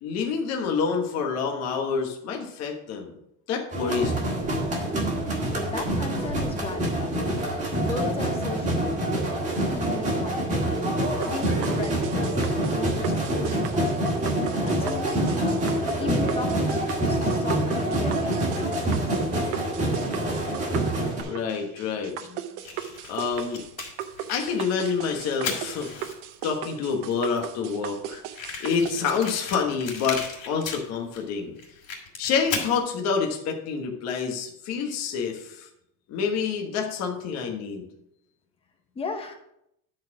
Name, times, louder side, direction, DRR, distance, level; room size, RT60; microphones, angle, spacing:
voice 1, 0.0-3.1 3.5-4.4 21.2-22.4 23.1-23.7 24.3-26.1 26.4-28.2 28.6-31.5 32.2-35.7 36.1-37.8, left 6 dB, 40° left, 2 dB, 1.2 m, -28 dB
sound 1, 3.7-21.2, right 1 dB, 20° right, 1.8 m, -26 dB
voice 2, 5.5-10.8 11.3-12.3 12.7-14.1 14.6-15.7 16.0-19.1 38.9-39.4, left 3 dB, 15° left, 4 dB, 1.0 m, -36 dB
sound 2, 11.2-29.1, right 11 dB, 50° right, 0.8 m, -37 dB
Fire, 22.6-26.4 27.1-27.2 27.4-27.5 27.7-27.8 28.3-31.2 31.6-32.8, left 5 dB, 65° left, 3.4 m, -35 dB
10.0 x 4.3 x 5.9 m, 0.78 s
cardioid pair, 160°, 40 cm